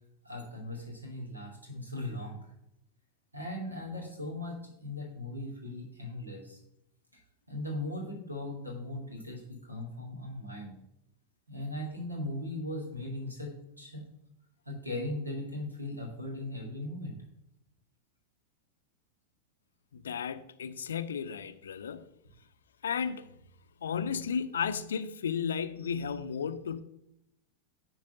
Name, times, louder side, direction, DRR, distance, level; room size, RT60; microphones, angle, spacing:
voice 1, 0.2-2.4 3.3-6.6 7.5-10.8 11.5-14.0 14.7-17.2, left 1 dB, 85° right, 2.7 m, -38 dB
voice 2, 19.9-22.1 22.8-23.3 23.8-26.8, left 7 dB, 65° left, 0.5 m, -34 dB
9.2 x 4.7 x 5.8 m
figure-of-eight pair, 90°, 0 cm